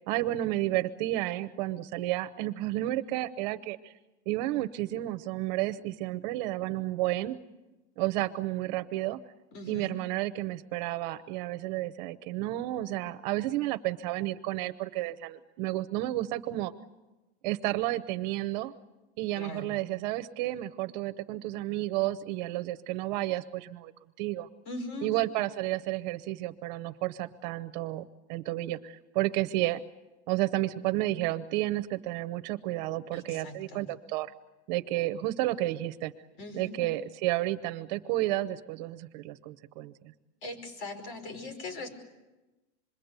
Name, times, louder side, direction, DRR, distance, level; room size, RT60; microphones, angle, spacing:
voice 1, 0.1-3.9 4.3-7.4 8.0-9.2 9.7-16.7 17.4-18.7 19.2-23.9 24.2-24.5 25.0-29.8 30.3-34.3 34.7-36.1 36.5-39.9, right 16 dB, 40° right, 10 dB, 0.8 m, -31 dB
voice 2, 9.5-9.9 19.4-19.7 24.7-25.1 33.1-33.8 36.4-36.8 40.4-41.9, left 2 dB, 50° left, 7 dB, 5.1 m, -40 dB
26.5 x 22.5 x 8.1 m, 1.1 s
supercardioid pair, 170°, 34 cm